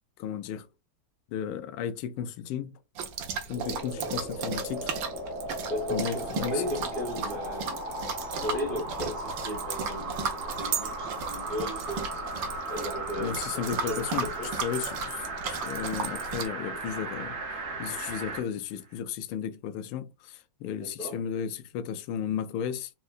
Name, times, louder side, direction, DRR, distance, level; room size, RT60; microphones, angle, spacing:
voice 1, 0.2-0.7 1.3-2.7 3.5-4.9 5.9-6.6 7.1-7.2 13.2-14.3 14.6-17.4 17.8-22.9, left 8 dB, 80° left, 1.4 m, -34 dB
sound 1, 3.0-16.5, right 5 dB, 70° right, 1.4 m, -35 dB
sound 2, 3.5-18.5 18.9-19.0, right 2 dB, 45° right, 1.1 m, -36 dB
voice 2, 5.7-7.8 8.4-12.1 12.7-14.5 20.8-21.2, left 1 dB, 30° left, 1.4 m, -35 dB
4.2 x 3.7 x 2.4 m
omnidirectional pair, 2.4 m